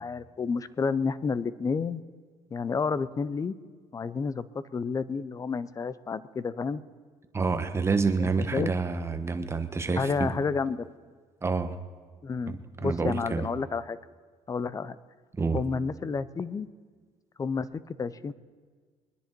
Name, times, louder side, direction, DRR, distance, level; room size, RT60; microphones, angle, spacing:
voice 1, 0.0-2.0 2.5-3.5 3.9-6.8 8.2-8.7 10.0-10.9 12.2-14.0 14.5-15.0 15.5-16.7 17.4-18.3, left 5 dB, 25° left, 16 dB, 0.7 m, -30 dB
voice 2, 7.3-10.3 11.4-11.8 12.5-13.5 15.4-15.6, right 4 dB, 20° right, 8 dB, 1.2 m, -28 dB
22.5 x 10.5 x 4.5 m, 1.5 s
cardioid pair, 105°, 13 cm